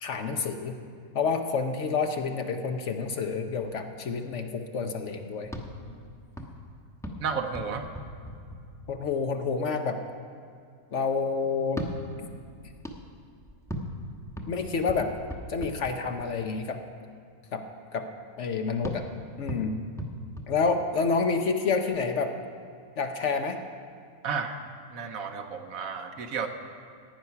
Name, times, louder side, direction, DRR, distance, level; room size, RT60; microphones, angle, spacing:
voice 1, 0.0-0.8 1.1-5.5 8.9-10.0 10.9-11.8 14.5-15.1 15.5-16.8 17.5-17.6 17.9-18.1 18.4-19.1 19.4-19.8 20.5-22.3 23.0-23.6, left 5 dB, 60° left, 6 dB, 1.0 m, -28 dB
sound 1, 5.4-9.3 11.6-16.5 18.8-21.3, equal, ahead, 1.0 m, -40 dB
voice 2, 7.2-7.9 24.2-24.6 24.9-26.5, right 6 dB, 70° right, 6 dB, 1.3 m, -32 dB
15.0 x 9.6 x 5.8 m, 2.3 s
omnidirectional pair, 1.6 m